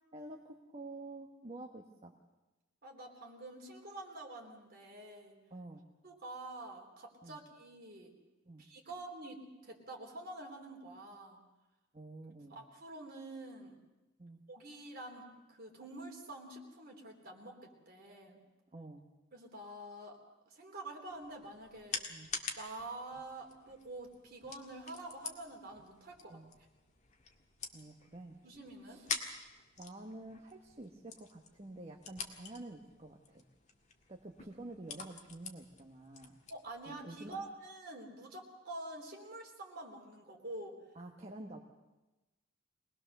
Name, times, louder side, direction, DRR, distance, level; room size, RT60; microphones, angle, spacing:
voice 1, 0.1-2.1 5.5-5.9 7.2-7.4 8.5-8.7 11.9-12.6 14.2-14.4 18.7-19.0 22.1-22.3 26.3-26.5 27.7-28.4 28.9-29.1 29.8-33.5 34.1-36.4 37.1-37.4 40.9-41.6, right 2 dB, 30° right, 1 dB, 1.2 m, -49 dB
voice 2, 2.8-5.4 6.0-8.1 8.6-11.4 12.5-13.8 14.5-18.4 19.3-20.2 20.5-22.0 22.6-26.4 28.4-29.0 36.5-40.8, right 2 dB, 50° right, 0 dB, 3.6 m, -47 dB
sound 1, 21.1-37.5, left 5 dB, 35° left, 1.9 m, -47 dB
24.0 x 19.5 x 6.7 m, 1.1 s
head